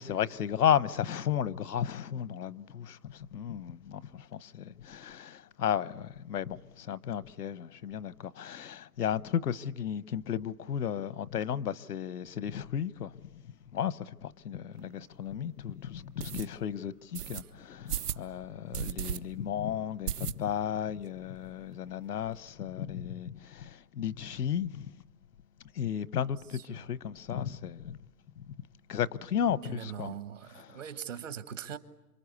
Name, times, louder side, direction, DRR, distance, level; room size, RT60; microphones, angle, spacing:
voice 1, 0.0-13.3 13.7-24.9 25.7-28.0 28.4-28.5 28.9-30.1, left 9 dB, 90° left, 1.0 m, -34 dB
sound 1, 14.8-14.9 15.4-15.5 16.2-16.5 17.1-17.4 17.9-18.2 18.7-19.2 19.5-19.6 20.1-20.7 21.1-21.2 21.4-21.5 21.8-22.4, right 9 dB, 85° right, 1.2 m, -35 dB
voice 2, 26.1-26.9 29.5-31.8, right 8 dB, 55° right, 1.4 m, -42 dB
27.5 x 24.5 x 8.3 m
hypercardioid pair, 175°, 45 cm